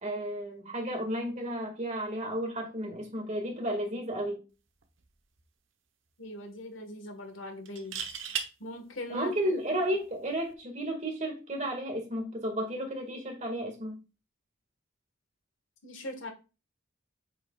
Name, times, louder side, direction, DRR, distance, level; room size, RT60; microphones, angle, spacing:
voice 1, 0.0-4.4 9.1-14.0, right 1 dB, 35° right, 1.9 m, -33 dB
sound 1, 4.8-5.0 5.4-5.5 7.7-8.5 10.3-10.5, right 7 dB, 70° right, 1.0 m, -35 dB
voice 2, 6.2-8.1 8.6-9.6 15.8-16.3, left 1 dB, 75° left, 1.5 m, -41 dB
8.0 x 5.2 x 2.4 m
head